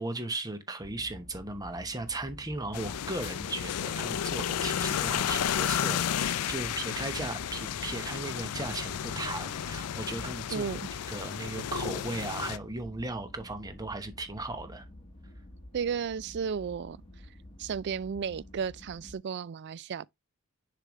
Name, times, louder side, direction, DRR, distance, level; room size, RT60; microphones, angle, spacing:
voice 1, 0.0-10.6 11.1-14.9, right 2 dB, 15° right, 1.0 m, -37 dB
sound 1, 0.8-19.2, left 1 dB, 25° left, 1.2 m, -49 dB
sound 2, 2.7-12.6, left 9 dB, 85° left, 0.4 m, -32 dB
voice 2, 10.5-10.8 15.7-17.0 17.6-20.1, right 6 dB, 50° right, 0.3 m, -33 dB
6.7 x 5.0 x 3.1 m
head